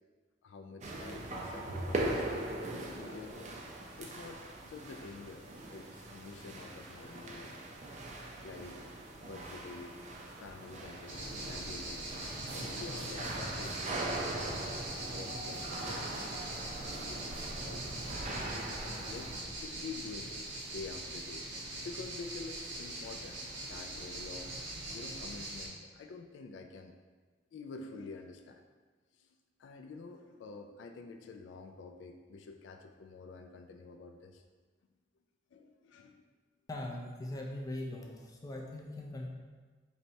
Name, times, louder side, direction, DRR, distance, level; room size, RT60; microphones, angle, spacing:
voice 1, 0.4-3.6 4.0-7.6 8.4-8.8 9.2-10.0 10.3-14.6 15.1-18.3 18.8-19.3 19.6-21.5 21.8-23.4 23.7-24.5 24.9-27.0 27.5-28.6 29.2-29.3 29.6-34.4 35.5-36.2, left 4 dB, 85° left, 5 dB, 0.3 m, -48 dB
sound 1, 0.8-19.4, right 1 dB, 40° right, 0.5 m, -41 dB
sound 2, 11.1-25.7, right 2 dB, 85° right, 0.8 m, -42 dB
voice 2, 36.7-39.3, left 1 dB, 20° left, -1 dB, 0.4 m, -41 dB
4.2 x 3.2 x 2.7 m, 1.4 s
head